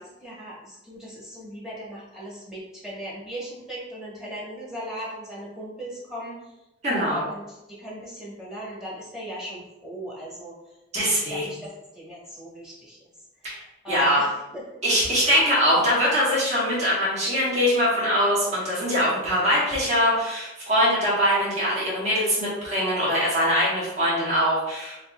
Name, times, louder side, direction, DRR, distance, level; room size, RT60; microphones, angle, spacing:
voice 1, 0.2-6.6 6.9-10.8 11.3-13.0 13.4-14.6 15.2-15.3, equal, 5° right, -6 dB, 1.0 m, -38 dB
voice 2, 6.8-7.2 10.9-11.4 13.4-13.6 13.9-14.2 14.8-24.9, equal, 35° right, -7 dB, 1.2 m, -22 dB
5.2 x 2.5 x 2.2 m, 0.94 s
head